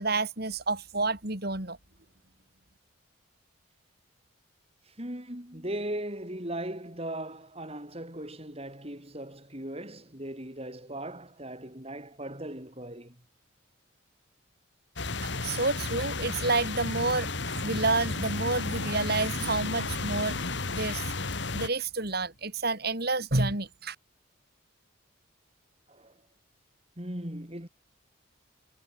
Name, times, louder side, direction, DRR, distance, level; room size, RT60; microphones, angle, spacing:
voice 1, 0.0-1.8 15.2-21.0 21.5-24.0, right 3 dB, 50° right, 4.0 m, -29 dB
voice 2, 4.9-13.2 25.9-26.1 27.0-27.7, right 1 dB, 30° right, 5.7 m, -38 dB
sound 1, 15.0-21.7, left 3 dB, 60° left, 2.6 m, -33 dB
head